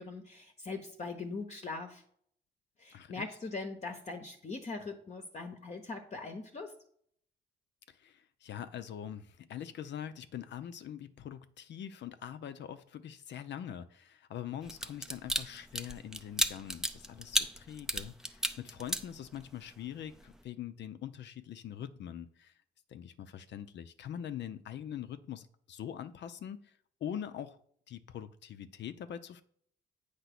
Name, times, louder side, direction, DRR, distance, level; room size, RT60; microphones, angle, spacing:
voice 1, 0.0-2.0 2.8-6.7, left 3 dB, 35° left, 0.9 m, -41 dB
voice 2, 2.9-3.3 7.9-22.5 22.9-27.6 27.9-29.4, left 9 dB, 65° left, 0.6 m, -43 dB
sound 1, 14.7-19.7 20.1-20.3, right 1 dB, ahead, 0.6 m, -33 dB
8.1 x 3.0 x 5.9 m
cardioid pair, 90°, 20 cm